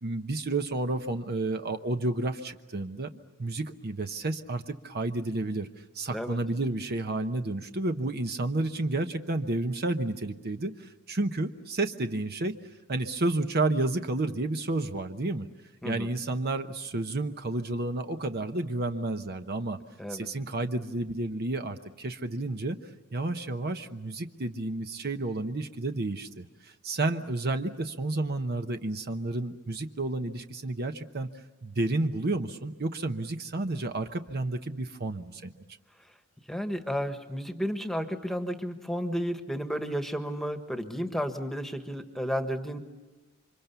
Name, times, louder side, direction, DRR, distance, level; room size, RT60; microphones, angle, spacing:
voice 1, 0.0-3.1 3.4-12.5 12.9-15.5 15.8-19.8 20.1-22.8 23.1-31.3 31.6-35.5, right 2 dB, 45° right, 7 dB, 0.9 m, -31 dB
voice 2, 36.5-42.8, equal, ahead, 7 dB, 1.4 m, -32 dB
28.5 x 25.5 x 6.9 m, 1.2 s
head